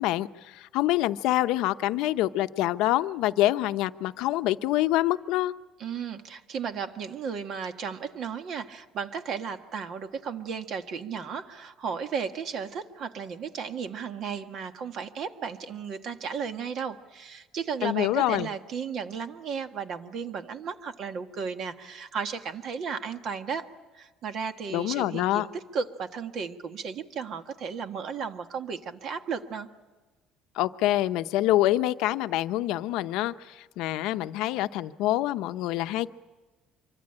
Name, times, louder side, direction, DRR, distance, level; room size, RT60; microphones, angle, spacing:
voice 1, 0.0-5.5 17.8-18.5 24.7-25.5 30.5-36.1, left 15 dB, 80° left, 10 dB, 0.8 m, -26 dB
voice 2, 5.8-29.7, right 6 dB, 50° right, 7 dB, 1.6 m, -34 dB
25.5 x 24.0 x 8.7 m, 1.2 s
cardioid pair, 140°, 0 cm